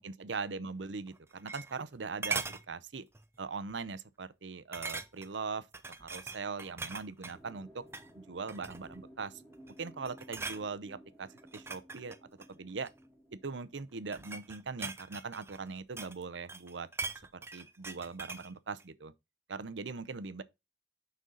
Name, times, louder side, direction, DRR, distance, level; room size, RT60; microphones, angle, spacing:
voice 1, 0.0-3.0 3.4-5.7 6.0-7.8 8.2-9.4 9.8-12.2 12.5-12.9 13.3-16.9 17.5-19.1 19.5-20.4, right 4 dB, 85° right, 0.7 m, -40 dB
sound 1, 1.1-1.9 2.2-2.6 3.1-3.4 3.7-3.8 4.7-5.4 5.7-7.4 7.8-8.1 8.5-9.0 9.5-9.8 10.0-10.6 11.4-13.0 13.8-16.2 16.5-18.5 18.8-18.9, right 4 dB, 15° right, 0.7 m, -41 dB
sound 2, 7.3-14.9, equal, 15° left, 2.9 m, -57 dB
6.4 x 5.4 x 3.9 m
head